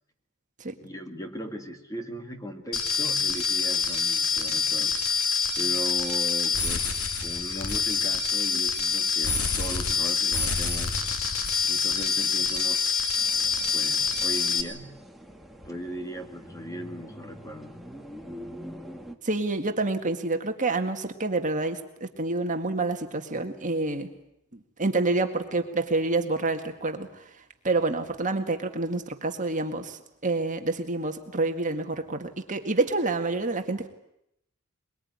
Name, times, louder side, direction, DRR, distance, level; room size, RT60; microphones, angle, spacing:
voice 1, 0.8-5.0 5.6-6.9 7.2-11.0 11.6-13.0 13.7-14.9 15.6-17.7, equal, 15° left, 5 dB, 2.1 m, -38 dB
sound 1, 2.7-14.6, left 5 dB, 80° left, 2.2 m, -26 dB
sound 2, 13.2-19.2, equal, ahead, 1.7 m, -45 dB
voice 2, 19.2-24.1 24.8-27.1 27.6-33.9, right 3 dB, 35° right, 5 dB, 2.0 m, -28 dB
23.0 x 22.5 x 9.7 m, 0.79 s
head